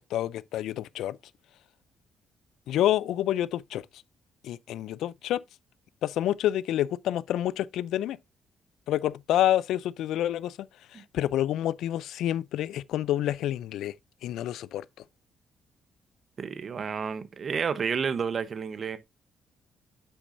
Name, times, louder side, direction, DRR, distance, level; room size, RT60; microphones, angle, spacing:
voice 1, 0.1-1.2 2.7-3.8 4.4-5.4 6.0-8.2 8.9-10.6 10.9-13.9 14.2-14.8, left 12 dB, 85° left, 0.4 m, -28 dB
voice 2, 16.4-19.0, right 6 dB, 45° right, 0.8 m, -30 dB
8.1 x 6.1 x 2.5 m
cardioid pair, 90°, 0 cm